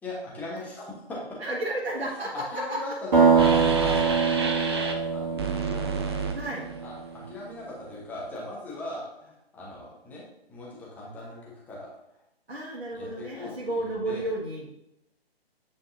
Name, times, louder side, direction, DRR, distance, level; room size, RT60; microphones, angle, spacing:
voice 1, 0.0-1.4 2.3-5.9 6.8-10.2 10.5-11.9 12.9-14.3, left 1 dB, 5° left, -5 dB, 1.1 m, -39 dB
voice 2, 1.4-2.8 6.3-6.7 12.5-14.7, right 1 dB, 80° right, -6 dB, 1.8 m, -32 dB
sound 1, 3.1-6.9, right 5 dB, 45° right, 2.1 m, -23 dB
sound 2, 3.4-4.9 5.4-7.0, right 4 dB, 25° right, 0.5 m, -31 dB
9.0 x 5.2 x 2.7 m, 0.83 s
figure-of-eight pair, 140°, 31 cm